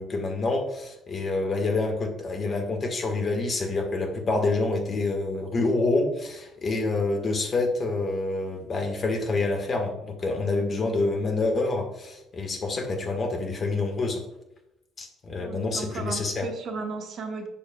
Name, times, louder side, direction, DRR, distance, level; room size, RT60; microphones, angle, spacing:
voice 1, 0.0-14.2 15.0-16.5, left 3 dB, 40° left, 3 dB, 1.7 m, -27 dB
voice 2, 15.4-17.5, right 4 dB, 50° right, 4 dB, 1.2 m, -35 dB
9.0 x 6.4 x 2.4 m, 0.87 s
figure-of-eight pair, 50°, 0 cm